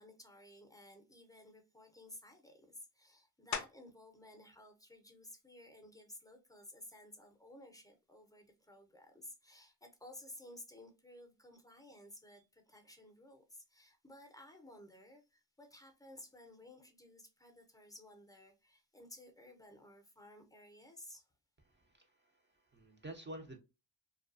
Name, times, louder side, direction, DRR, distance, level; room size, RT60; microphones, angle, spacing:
voice 1, 0.0-21.2, left 1 dB, 10° left, 0.8 m, -56 dB
sound 1, 3.5-4.1 4.7-9.1 9.6-14.8 15.1-20.7, left 6 dB, 40° left, 0.5 m, -52 dB
voice 2, 21.6-23.6, right 1 dB, 25° right, 0.7 m, -50 dB
2.4 x 2.2 x 2.5 m
cardioid pair, 50°, 45 cm